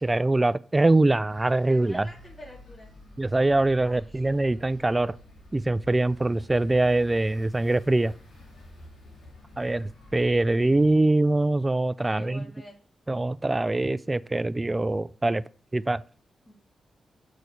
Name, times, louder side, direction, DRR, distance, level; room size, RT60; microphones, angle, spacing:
voice 1, 0.0-2.1 3.2-5.1 5.5-8.1 9.6-12.5 13.1-15.4 15.7-16.0, right 2 dB, 25° right, 0.3 m, -23 dB
sound 1, 1.3-10.9, left 1 dB, 85° left, 2.4 m, -49 dB
voice 2, 1.7-2.9 3.8-4.2 12.0-12.7 16.5-16.6, left 1 dB, 35° left, 2.1 m, -47 dB
6.4 x 4.1 x 6.5 m
supercardioid pair, 50°, 0 cm